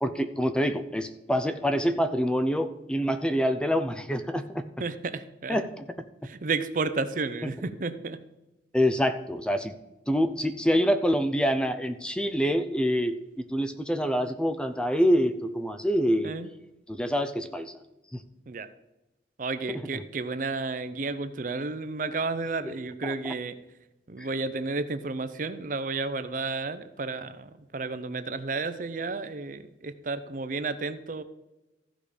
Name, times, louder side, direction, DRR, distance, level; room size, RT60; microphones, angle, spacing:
voice 1, 0.0-4.6 5.5-5.9 7.4-7.5 8.7-9.7 10.1-16.3 16.9-17.7 18.1-18.2 19.7-20.0 23.0-23.3 24.2-24.3, equal, 5° left, 9 dB, 0.5 m, -26 dB
voice 2, 4.8-5.6 6.2-8.2 16.2-16.5 18.5-18.7 19.4-23.5 24.1-31.2, right 3 dB, 50° right, 12 dB, 0.6 m, -32 dB
14.5 x 5.1 x 5.0 m, 0.98 s
head